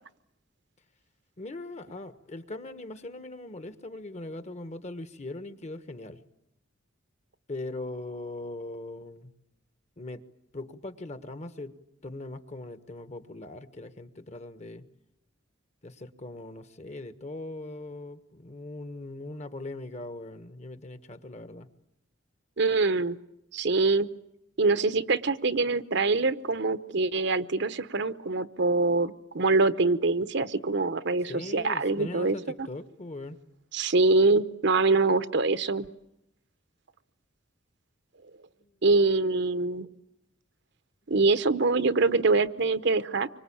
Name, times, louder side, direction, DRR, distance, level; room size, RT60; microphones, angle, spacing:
voice 1, 1.4-6.2 7.5-9.3 10.0-10.2 10.5-11.8 12.0-14.8 15.8-21.7 31.3-33.4, left 2 dB, 35° left, 11 dB, 1.4 m, -40 dB
voice 2, 22.6-23.2 23.5-24.1 24.6-32.7 33.7-35.9 38.8-39.9 41.1-43.3, right 3 dB, 65° right, 13 dB, 0.9 m, -24 dB
25.5 x 25.0 x 8.7 m, 0.83 s
head